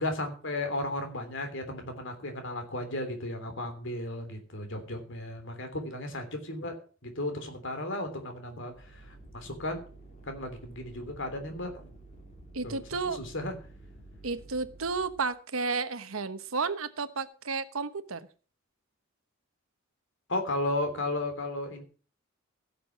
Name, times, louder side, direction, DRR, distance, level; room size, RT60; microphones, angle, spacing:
voice 1, 0.0-6.7 7.0-9.8 10.2-11.9 12.6-12.8 13.1-13.5 20.3-21.8, left 1 dB, 65° left, 7 dB, 3.3 m, -34 dB
sound 1, 8.7-15.3, right 2 dB, 35° left, 3.6 m, -51 dB
voice 2, 12.5-13.2 14.2-18.3, right 4 dB, 90° right, 11 dB, 1.1 m, -32 dB
16.0 x 6.9 x 6.0 m, 0.39 s
head